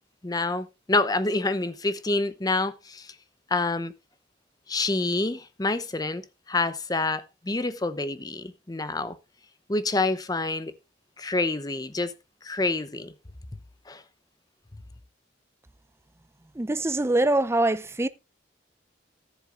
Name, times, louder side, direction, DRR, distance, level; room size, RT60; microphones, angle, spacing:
voice 1, 0.2-3.1 3.5-3.9 4.7-6.2 6.5-9.2 9.7-10.7 11.2-12.1 12.4-13.1 13.9-14.0, left 2 dB, 20° left, 0.7 m, -27 dB
voice 2, 16.6-18.1, right 2 dB, 15° right, 0.5 m, -23 dB
14.0 x 10.5 x 2.5 m
head